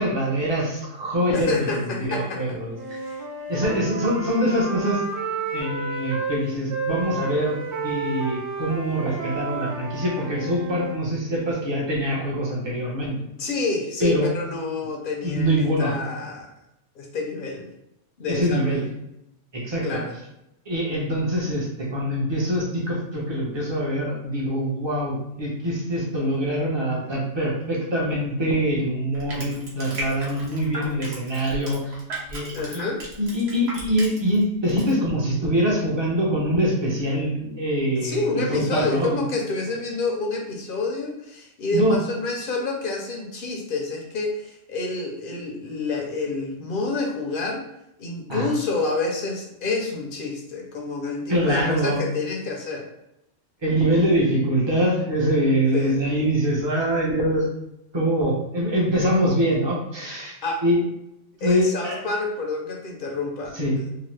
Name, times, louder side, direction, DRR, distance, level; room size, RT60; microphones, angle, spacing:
voice 1, 0.0-2.8 3.5-5.0 5.5-7.6 7.8-13.1 14.0-14.3 15.2-15.9 18.3-18.8 19.5-19.9 20.7-32.0 32.3-32.8 33.2-39.2 41.7-42.0 48.3-48.5 51.3-52.0 53.6-57.4 57.9-60.3 60.6-60.8 61.4-62.0 63.5-63.8, equal, 30° right, -3 dB, 0.7 m, -24 dB
voice 2, 1.3-2.6 13.4-16.5 17.0-17.7 18.2-18.9 19.8-20.1 32.5-33.0 38.0-47.6 48.0-52.9 55.7-56.0 60.4-60.6 61.4-63.9, left 3 dB, 60° left, 1 dB, 0.7 m, -28 dB
Wind instrument woodwind instrument, 2.8-6.4 6.7-11.0, right 3 dB, 90° right, 1.0 m, -31 dB
Crushing, 29.1-34.4 34.7-34.9, right 2 dB, 65° right, 1.1 m, -35 dB
2.8 x 2.1 x 3.1 m, 0.84 s
omnidirectional pair, 1.2 m